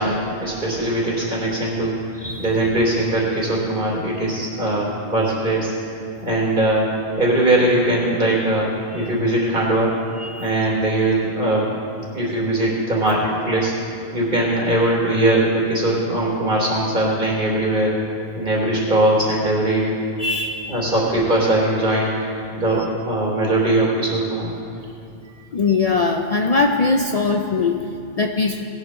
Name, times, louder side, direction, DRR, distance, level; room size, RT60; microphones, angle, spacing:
voice 1, 0.0-1.9 2.4-5.7 6.2-10.1 10.4-11.7 12.1-13.7 14.1-17.9 18.3-19.9 20.7-24.5, right 1 dB, 55° right, -3 dB, 3.1 m, -20 dB
voice 2, 2.2-2.5 6.2-6.3 8.9-9.1 10.2-10.4 20.2-20.7 25.5-28.6, left 4 dB, 45° left, 3 dB, 0.5 m, -21 dB
19.5 x 11.5 x 3.1 m, 2.6 s
omnidirectional pair, 1.1 m